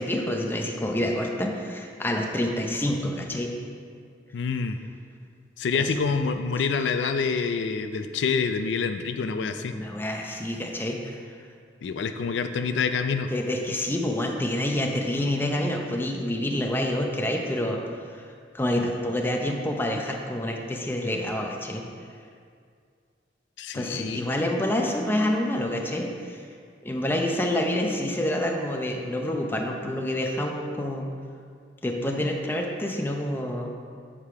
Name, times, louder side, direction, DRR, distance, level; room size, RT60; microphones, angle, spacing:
voice 1, 0.0-3.5 5.7-5.9 9.7-11.2 13.3-17.8 18.1-18.3 18.5-21.8 23.7-26.5 26.8-31.1 31.8-33.7, left 1 dB, 10° left, 1 dB, 0.6 m, -27 dB
voice 2, 4.3-4.8 5.6-9.7 11.8-13.3 23.6-24.3, left 5 dB, 75° left, 8 dB, 0.4 m, -27 dB
7.4 x 5.0 x 4.7 m, 2.2 s
head